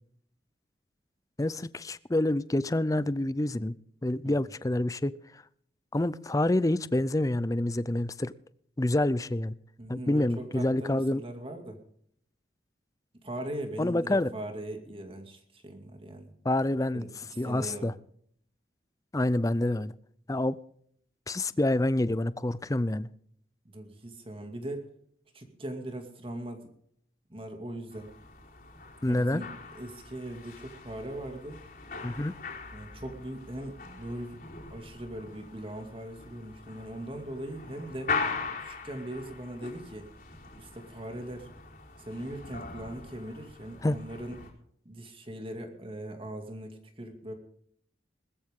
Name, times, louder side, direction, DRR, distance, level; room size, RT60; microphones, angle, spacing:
voice 1, 1.4-3.7 4.0-5.4 5.9-8.3 8.8-9.5 9.9-11.2 13.8-14.3 16.4-17.1 17.4-17.9 19.1-19.9 20.3-20.6 21.3-23.1 29.0-29.4 32.0-32.3 43.8-44.0, left 1 dB, 20° left, 17 dB, 0.5 m, -27 dB
voice 2, 9.8-11.8 13.2-16.3 16.9-17.9 23.6-24.8 25.3-26.7 27.3-28.1 29.0-31.6 32.7-34.4 34.7-38.2 38.6-40.1 40.6-41.5 42.0-44.4 44.8-47.3, right 1 dB, 30° right, 5 dB, 2.4 m, -40 dB
sound 1, 27.9-44.5, left 4 dB, 50° left, 4.5 m, -41 dB
20.0 x 14.0 x 3.7 m, 0.65 s
head